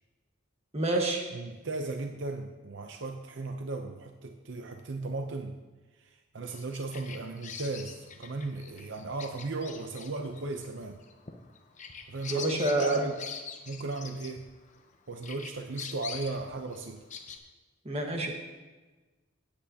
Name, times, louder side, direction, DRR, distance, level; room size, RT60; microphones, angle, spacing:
voice 1, 0.7-1.2 12.3-13.0 17.8-18.3, right 2 dB, 35° right, 1 dB, 1.4 m, -27 dB
voice 2, 1.3-5.6 6.0-11.0 12.1-13.2 13.7-14.5 15.1-17.0, right 3 dB, 70° right, 5 dB, 0.7 m, -36 dB
Bird vocalization bird call bird song, 6.5-14.9 15.2-17.4, left 6 dB, 40° left, 0.9 m, -44 dB
16.5 x 8.7 x 2.8 m, 1.2 s
head